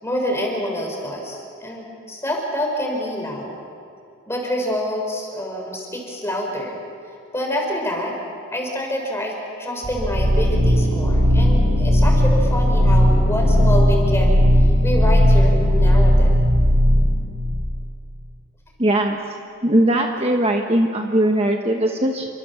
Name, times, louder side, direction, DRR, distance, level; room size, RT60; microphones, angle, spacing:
voice 1, 0.0-3.6 4.3-6.8 7.3-8.1 8.5-16.4, equal, 10° left, 0 dB, 5.1 m, -27 dB
sound 1, 9.8-17.7, equal, 80° right, 4.3 m, -16 dB
voice 2, 18.8-19.2 19.6-22.3, right 1 dB, 25° right, 2 dB, 1.3 m, -19 dB
29.5 x 25.0 x 7.2 m, 2.5 s
head